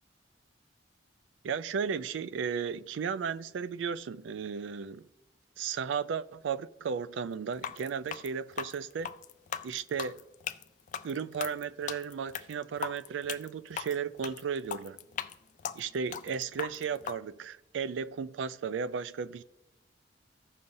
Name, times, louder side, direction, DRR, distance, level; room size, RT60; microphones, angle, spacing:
voice 1, 1.4-5.1 5.6-9.1 9.6-10.2 11.0-15.0 15.8-19.4, right 6 dB, 90° right, 0.4 m, -35 dB
sound 1, 7.5-17.2, left 8 dB, 45° left, 0.3 m, -39 dB
15.0 x 5.5 x 2.6 m
head